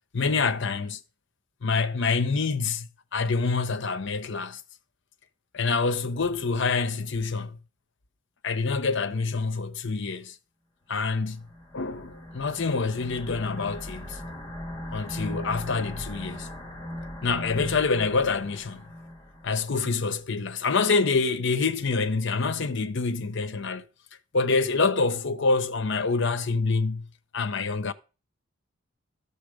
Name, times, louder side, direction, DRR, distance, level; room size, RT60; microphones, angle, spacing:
voice 1, 0.1-1.0 1.6-4.6 5.5-7.6 8.4-10.4 10.9-11.5 11.7-14.2 14.9-16.5 17.2-18.9 19.4-23.8 24.3-27.1 27.3-27.9, left 4 dB, 60° left, 0.8 m, -26 dB
sound 1, 11.2-19.9, left 1 dB, 20° left, 2.0 m, -39 dB
12.5 x 6.8 x 5.0 m
head